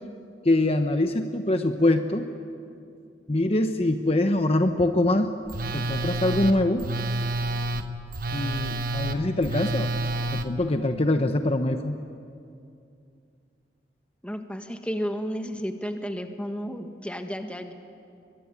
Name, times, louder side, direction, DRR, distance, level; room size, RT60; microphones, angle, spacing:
voice 1, 0.4-2.3 3.3-5.3 5.7-6.9 8.3-9.9 10.3-12.0, left 1 dB, 35° left, 7 dB, 1.0 m, -24 dB
Telephone, 5.5-10.5, right 2 dB, 55° right, 1.2 m, -29 dB
voice 2, 14.2-17.7, equal, 5° left, 6 dB, 1.5 m, -32 dB
22.5 x 22.5 x 9.7 m, 2.5 s
head